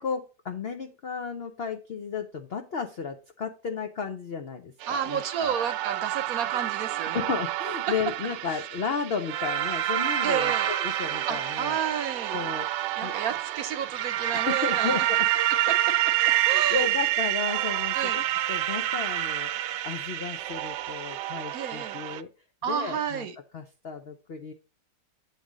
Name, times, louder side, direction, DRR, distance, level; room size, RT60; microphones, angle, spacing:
voice 1, 0.0-5.6 7.0-11.8 12.3-12.7 13.0-13.1 14.3-15.3 16.3-19.5 19.8-22.3 22.7-23.3 23.5-24.5, left 5 dB, 75° left, 6 dB, 0.5 m, -33 dB
sound 1, 4.8-22.2, right 13 dB, 90° right, 1.2 m, -28 dB
voice 2, 4.9-7.2 8.5-8.6 10.2-10.7 11.3-12.5 12.9-15.1 15.7-15.8 16.5-16.9 17.9-18.2 21.5-22.0 22.6-23.4, right 8 dB, 60° right, 9 dB, 1.1 m, -31 dB
8.3 x 3.3 x 6.1 m, 0.34 s
omnidirectional pair, 1.9 m